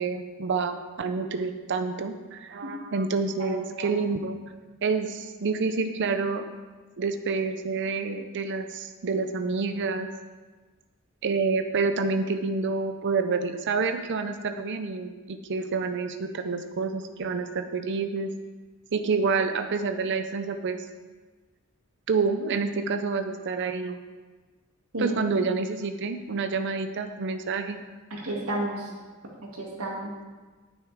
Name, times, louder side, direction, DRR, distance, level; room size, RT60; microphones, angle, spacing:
voice 1, 0.0-4.4 4.8-6.4 7.0-10.1 11.2-18.3 18.9-20.8 22.1-24.0 25.0-27.8, right 4 dB, 55° right, 8 dB, 0.5 m, -28 dB
voice 2, 3.4-3.9 24.9-25.2 28.1-28.9 29.5-30.1, right 1 dB, 75° right, -3 dB, 2.4 m, -32 dB
10.0 x 9.3 x 3.5 m, 1.3 s
head